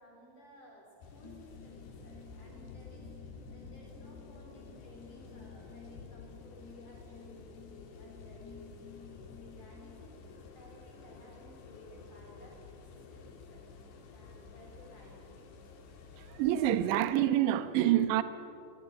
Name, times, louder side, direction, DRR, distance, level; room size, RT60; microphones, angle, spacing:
voice 1, 0.0-13.7 14.1-15.4, equal, 45° left, 5.2 m, -56 dB
sound 1, 1.0-16.9, left 4 dB, 60° left, 4.2 m, -51 dB
sound 2, 1.2-10.1, left 8 dB, 20° left, 6.4 m, -56 dB
voice 2, 16.2-18.2, right 12 dB, 75° right, 3.2 m, -27 dB
24.5 x 21.5 x 9.0 m
omnidirectional pair, 5.4 m